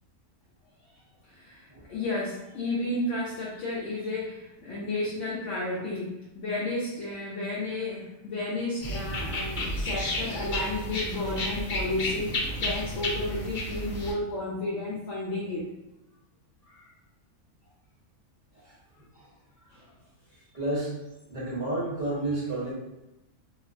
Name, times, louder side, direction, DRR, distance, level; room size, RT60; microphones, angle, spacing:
voice 1, 1.3-15.7 16.7-16.9 19.7-19.9 22.1-22.2, left 2 dB, 65° left, -7 dB, 0.8 m, -32 dB
sound 1, 8.8-14.1, left 1 dB, 40° left, 0.9 m, -32 dB
voice 2, 20.5-20.9 21.3-22.7, right 2 dB, 35° right, -8 dB, 1.1 m, -30 dB
3.0 x 2.0 x 2.5 m, 0.96 s
omnidirectional pair, 1.6 m